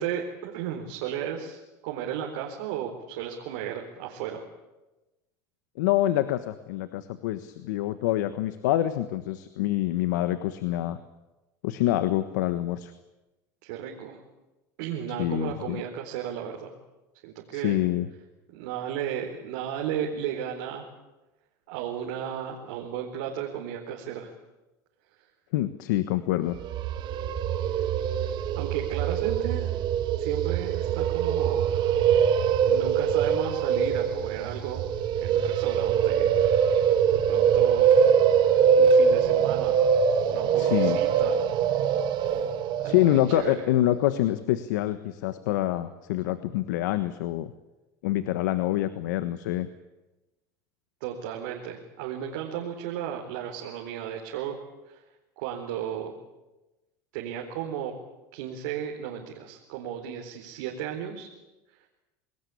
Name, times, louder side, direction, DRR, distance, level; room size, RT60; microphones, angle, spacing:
voice 1, 0.0-4.4 13.6-14.2 14.8-16.7 17.2-17.8 18.5-20.9 21.7-24.3 28.6-29.7 30.2-31.7 32.6-34.9 35.2-36.4 37.1-38.5 38.8-39.8 40.3-41.4 42.8-43.5 51.0-54.6 54.9-55.0 55.4-56.1 57.1-57.9 58.3-61.3, right 9 dB, 80° right, -1 dB, 4.3 m, -34 dB
voice 2, 5.7-11.0 11.6-12.9 15.2-15.8 17.5-18.1 25.5-26.6 40.6-41.0 42.8-47.5 48.0-49.7, left 14 dB, 85° left, 11 dB, 1.4 m, -26 dB
sound 1, 26.6-43.5, right 7 dB, 50° right, 2.0 m, -23 dB
28.0 x 20.0 x 8.6 m, 1.0 s
supercardioid pair, 115°, 10 cm